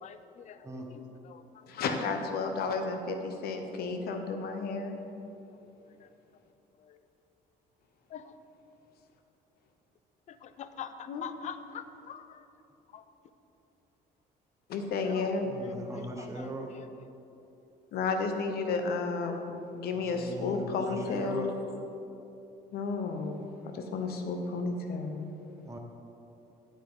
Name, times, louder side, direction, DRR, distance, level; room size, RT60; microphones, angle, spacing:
voice 1, 0.0-2.0 5.8-6.1 6.8-7.0 8.1-8.3 10.3-12.4 12.9-13.0 15.0-15.3 15.6-16.9 25.5-25.6, left 8 dB, 45° left, 11 dB, 0.5 m, -46 dB
voice 2, 1.7-5.0 11.1-11.2 14.7-15.5 17.9-21.5 22.7-25.3, left 4 dB, 65° left, 6 dB, 1.0 m, -32 dB
voice 3, 15.4-16.7 19.9-21.5 25.6-25.8, right 1 dB, 15° right, 1 dB, 1.1 m, -39 dB
8.7 x 8.6 x 3.8 m, 2.9 s
cardioid pair, 110°, 17 cm